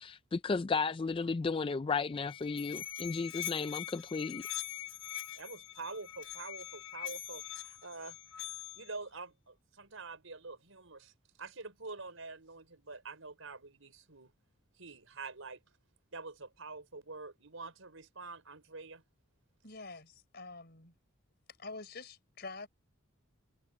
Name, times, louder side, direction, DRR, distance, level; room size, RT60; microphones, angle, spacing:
voice 1, 0.0-4.4, left 4 dB, 25° left, 0.3 m, -34 dB
Musical instrument, 2.0-9.0, left 13 dB, 80° left, 3.7 m, -43 dB
voice 2, 5.4-8.2 8.4-11.1 11.4-14.3 14.8-15.6 16.1-19.0, right 3 dB, 80° right, 5.0 m, -46 dB
voice 3, 19.6-20.9 21.6-22.7, left 3 dB, 50° left, 4.6 m, -46 dB
head